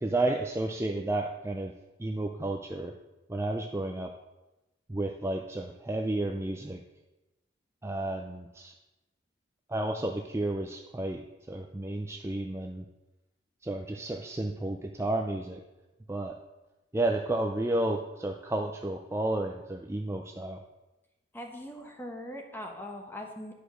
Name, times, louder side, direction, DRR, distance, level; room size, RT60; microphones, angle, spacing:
voice 1, 0.0-1.7 2.0-2.9 3.3-4.1 4.9-6.8 7.8-8.7 9.7-11.2 11.5-12.8 13.6-15.6 16.1-16.4 16.9-20.6, right 2 dB, 15° right, 3 dB, 0.4 m, -31 dB
voice 2, 21.3-23.5, left 1 dB, 10° left, 2 dB, 1.1 m, -41 dB
10.0 x 5.0 x 6.1 m, 1.0 s
head